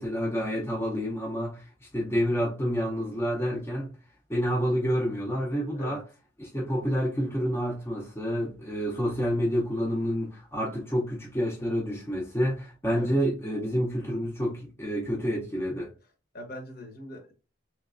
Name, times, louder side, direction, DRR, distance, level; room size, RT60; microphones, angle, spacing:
voice 1, 0.0-1.6 1.9-3.9 4.3-6.0 6.4-15.9, equal, 10° left, 0.5 m, -28 dB
voice 2, 16.3-17.3, left 1 dB, 50° left, 0.9 m, -41 dB
3.3 x 3.0 x 2.4 m
head